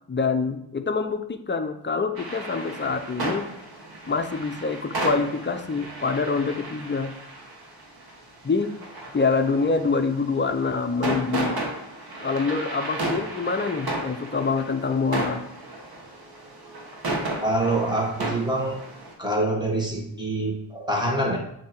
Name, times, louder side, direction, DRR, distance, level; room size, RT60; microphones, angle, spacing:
voice 1, 0.1-3.4 4.1-7.1 8.4-8.7 9.1-11.6 12.2-15.4, left 4 dB, 25° left, 7 dB, 0.6 m, -25 dB
sound 1, 2.2-19.1, right 1 dB, 50° right, 1.4 m, -34 dB
voice 2, 17.4-18.8 19.2-21.4, right 1 dB, 10° right, -1 dB, 1.7 m, -25 dB
7.2 x 2.9 x 4.5 m, 0.75 s
cardioid pair, 55°, 49 cm